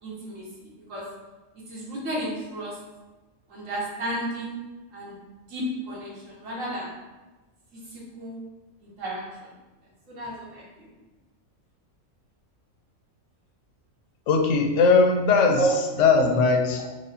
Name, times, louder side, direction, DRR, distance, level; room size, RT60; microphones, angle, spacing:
voice 1, 0.0-1.0 1.7-2.8 3.5-4.5 4.9-5.2 5.5-6.9 7.7-8.4 8.8-9.5 10.1-10.9 15.6-15.8 16.1-16.3, right 2 dB, 75° right, -5 dB, 1.6 m, -32 dB
voice 2, 14.3-15.6 16.0-16.8, left 4 dB, 75° left, 4 dB, 0.9 m, -19 dB
4.8 x 2.2 x 4.0 m, 1.2 s
omnidirectional pair, 1.4 m